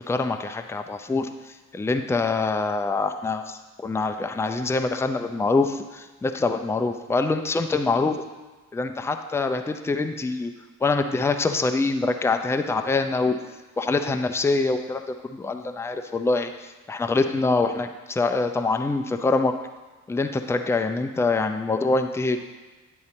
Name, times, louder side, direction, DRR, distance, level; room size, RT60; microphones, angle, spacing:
voice 1, 0.1-1.3 1.7-8.2 8.7-10.5 10.8-13.4 13.8-19.5 20.1-22.4, left 3 dB, 5° left, 7 dB, 0.4 m, -25 dB
9.5 x 3.8 x 4.2 m, 1.3 s
figure-of-eight pair, 40°, 41 cm